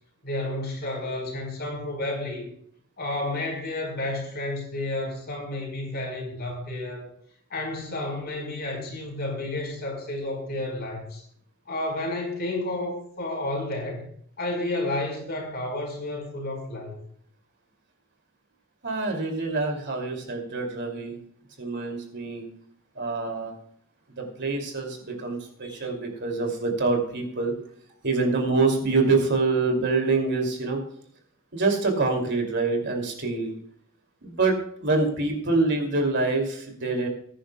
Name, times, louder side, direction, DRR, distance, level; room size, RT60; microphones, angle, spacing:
voice 1, 0.2-2.5 3.0-7.1 7.5-11.2 11.7-14.0 14.4-17.0, left 2 dB, 45° left, 0 dB, 4.9 m, -31 dB
voice 2, 18.8-21.2 21.6-22.4 23.0-23.5 24.2-27.5 28.0-30.8 31.5-33.5 34.2-37.1, right 3 dB, 50° right, 3 dB, 2.8 m, -25 dB
21.0 x 10.0 x 2.3 m, 0.63 s
head